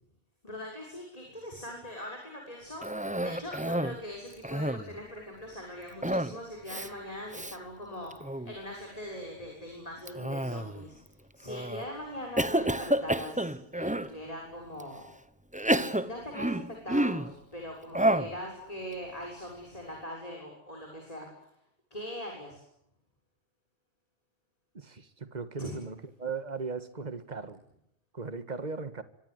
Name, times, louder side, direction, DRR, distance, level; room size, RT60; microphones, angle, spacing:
voice 1, 0.4-11.0 11.3-15.1 15.7-21.3 21.9-22.6 25.6-25.8, left 1 dB, 30° left, 1 dB, 6.9 m, -41 dB
Cough, 2.8-4.0 4.3-5.0 6.0-6.4 6.7-6.9 7.3-7.6 8.1-8.5 10.1-10.9 11.5-11.9 12.4-14.1 14.8-14.9 15.5-17.3 17.9-18.4, right 1 dB, 5° right, 1.0 m, -29 dB
voice 2, 24.7-27.6 28.1-29.0, right 4 dB, 35° right, 11 dB, 1.9 m, -38 dB
27.5 x 25.0 x 8.1 m, 0.78 s
omnidirectional pair, 1.2 m